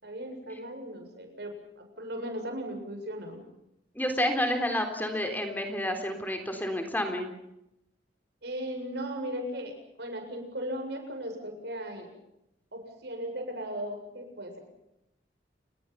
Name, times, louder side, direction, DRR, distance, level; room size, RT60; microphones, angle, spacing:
voice 1, 0.0-3.4 8.4-12.1 12.7-14.6, equal, 65° right, 5 dB, 7.5 m, -37 dB
voice 2, 4.0-7.3, left 1 dB, 10° left, 5 dB, 3.7 m, -29 dB
30.0 x 21.5 x 5.9 m, 0.84 s
head